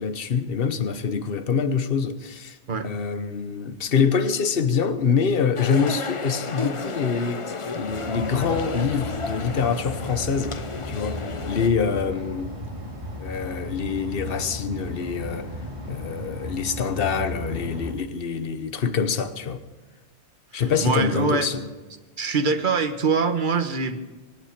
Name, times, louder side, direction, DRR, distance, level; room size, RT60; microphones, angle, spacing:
voice 1, 0.0-2.6 2.8-7.5 7.7-10.6 10.8-12.6 13.2-15.5 15.8-19.6 20.5-21.6, left 6 dB, 55° left, 1.2 m, -25 dB
sound 1, 5.6-11.7, left 4 dB, 30° left, 0.7 m, -32 dB
sound 2, 7.9-17.9, left 1 dB, 30° right, 2.6 m, -35 dB
voice 2, 20.5-21.5 22.2-24.0, right 4 dB, 45° right, 1.3 m, -24 dB
24.5 x 8.7 x 6.0 m
omnidirectional pair, 1.2 m